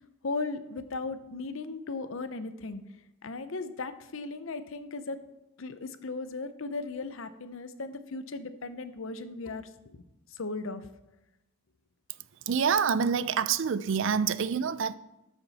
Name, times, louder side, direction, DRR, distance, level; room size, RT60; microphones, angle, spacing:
voice 1, 0.2-2.8 3.2-5.2 5.6-10.0 10.4-10.8, left 3 dB, 60° left, 0.7 m, -37 dB
voice 2, 12.5-14.9, right 6 dB, 55° right, 0.4 m, -26 dB
12.5 x 7.1 x 4.1 m
head